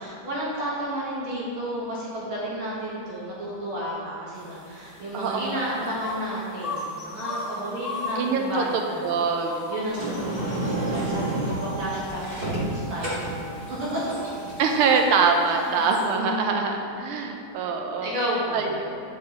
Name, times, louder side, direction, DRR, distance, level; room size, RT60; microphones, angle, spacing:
voice 1, 0.0-9.1 9.7-14.3 15.6-15.9 16.1-16.9 18.0-18.7, right 1 dB, 70° right, -7 dB, 2.1 m, -32 dB
sound 1, 4.3-16.2, left 3 dB, 30° left, 1.5 m, -39 dB
voice 2, 5.1-6.0 8.2-9.6 14.6-18.1 18.5-19.0, right 5 dB, 90° right, 3 dB, 1.5 m, -24 dB
Sliding door, 9.9-15.0, right 1 dB, 30° right, 1.0 m, -30 dB
Wind instrument woodwind instrument, 10.3-15.9, right 4 dB, 5° left, 0.4 m, -42 dB
9.5 x 4.8 x 4.1 m, 2.6 s
omnidirectional pair, 2.3 m